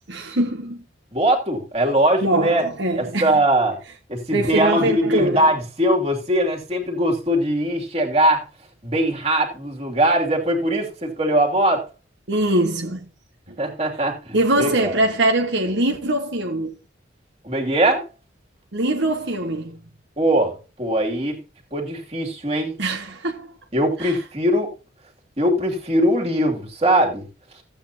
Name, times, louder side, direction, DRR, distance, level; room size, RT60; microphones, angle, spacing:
voice 1, 0.1-0.8 2.2-3.3 4.3-5.5 12.3-13.0 14.3-16.7 18.7-19.8 22.8-23.5 24.0-24.2, right 1 dB, 65° right, 1.4 m, -22 dB
voice 2, 1.1-2.7 3.0-3.8 4.1-8.4 8.8-11.8 13.6-14.9 17.4-18.1 20.2-21.4 21.7-22.7 23.7-24.7 25.4-27.3, right 1 dB, 35° right, 2.7 m, -21 dB
15.0 x 8.7 x 2.8 m
head